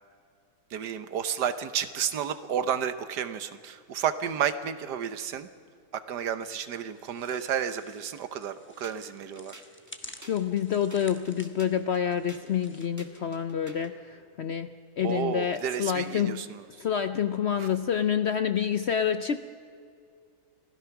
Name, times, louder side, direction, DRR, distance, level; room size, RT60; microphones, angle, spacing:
voice 1, 0.7-5.5 5.9-9.6 15.0-16.6 17.6-17.7, right 8 dB, 85° right, 12 dB, 1.6 m, -31 dB
sound 1, 6.5-12.9, left 1 dB, 10° left, 0.9 m, -51 dB
sound 2, 8.8-14.0, right 1 dB, 10° right, 1.5 m, -51 dB
voice 2, 10.3-14.7 15.0-16.4 16.8-19.4, left 8 dB, 60° left, 10 dB, 0.7 m, -28 dB
26.0 x 16.5 x 5.9 m, 2.3 s
omnidirectional pair, 1.8 m